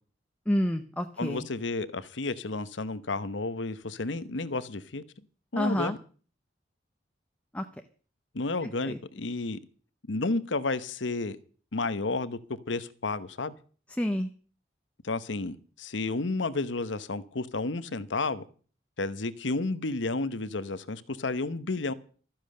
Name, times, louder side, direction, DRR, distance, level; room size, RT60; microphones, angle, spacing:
voice 1, 0.5-1.4 5.6-5.9 7.5-7.7 8.6-9.0 14.0-14.3, equal, 5° left, 0.6 m, -29 dB
voice 2, 1.2-5.0 5.5-6.0 8.3-9.6 10.1-11.4 11.7-12.4 12.7-13.5 15.0-18.4 19.0-21.9, left 3 dB, 85° left, 1.0 m, -31 dB
13.5 x 10.5 x 6.6 m
head